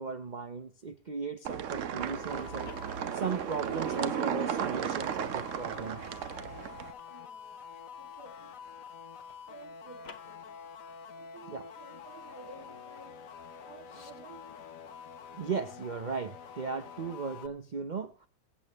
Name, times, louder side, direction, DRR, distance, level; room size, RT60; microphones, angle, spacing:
voice 1, 0.0-2.8 3.1-6.2 11.5-11.6 13.9-14.1 15.3-18.3, right 5 dB, 40° right, 8 dB, 0.7 m, -37 dB
sound 1, 1.4-6.9, right 8 dB, 60° right, 1.0 m, -34 dB
sound 2, 2.0-17.5, left 6 dB, 60° left, 1.3 m, -47 dB
sound 3, 2.4-4.3 4.9-8.7 8.9-10.9, left 4 dB, 40° left, 1.5 m, -57 dB
voice 2, 7.1-7.6 8.0-8.6 9.5-10.6 11.2-13.2 13.6-14.7, right 4 dB, 75° right, 1 dB, 2.4 m, -53 dB
23.0 x 8.7 x 3.5 m, 0.35 s
omnidirectional pair, 1.7 m